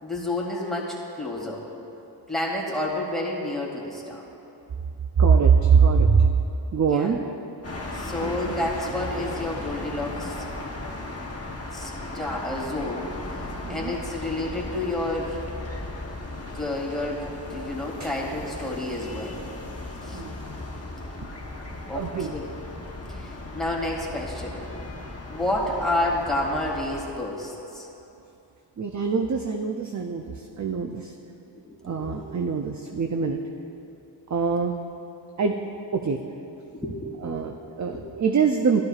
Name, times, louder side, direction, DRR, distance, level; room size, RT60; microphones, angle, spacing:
voice 1, 0.0-1.6 2.3-4.2 6.9-7.2 7.9-10.5 11.7-13.1 13.7-15.4 16.5-19.4 20.0-20.2 21.9-22.4 23.1-24.6 25.3-27.9 31.5-32.2 36.7-37.3 37.9-38.0, left 1 dB, ahead, -5 dB, 2.1 m, -30 dB
voice 2, 5.2-6.3 6.7-7.4 8.2-8.6 13.6-13.9 18.0-18.1 20.1-20.3 21.2-21.3 21.9-22.4 28.8-31.1 31.8-33.4 34.3-34.8 35.4-35.6 35.9-36.2 37.2-38.8, right 6 dB, 40° right, 3 dB, 0.5 m, -23 dB
sound 1, 7.6-27.0, left 2 dB, 35° left, 1.1 m, -36 dB
12.5 x 11.5 x 2.4 m, 2.9 s
wide cardioid pair, 50°, 44 cm